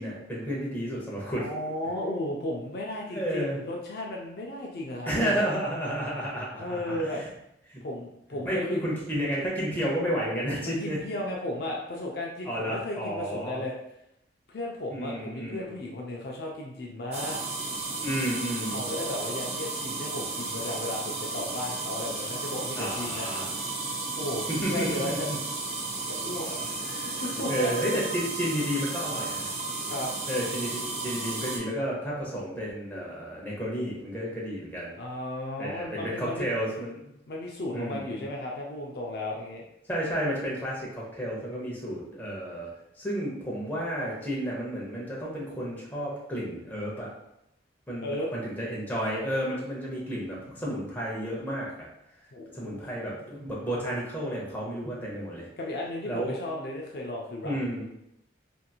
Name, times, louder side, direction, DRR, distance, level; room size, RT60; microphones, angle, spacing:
voice 1, 0.0-1.5 3.1-3.6 5.1-7.2 7.7-7.8 8.4-11.0 12.5-13.6 14.9-15.7 18.0-18.8 22.8-23.5 24.5-25.4 27.5-29.5 30.3-35.0 35.6-37.1 37.7-38.3 39.9-42.7 43.0-47.1 47.9-51.9 52.5-55.5 56.0-56.4 57.4-57.9, equal, 10° left, -5 dB, 0.7 m, -31 dB
voice 2, 1.4-5.5 6.6-7.2 7.8-8.8 10.6-13.7 14.5-17.4 18.7-25.3 26.1-27.7 29.8-30.1 35.0-36.5 37.3-39.7 48.0-48.3 50.5-50.7 52.3-52.9 55.6-57.6, left 1 dB, 55° left, -1 dB, 0.4 m, -35 dB
sound 1, 17.1-31.6, right 3 dB, 35° right, 0.4 m, -33 dB
2.9 x 2.6 x 2.3 m, 0.81 s
head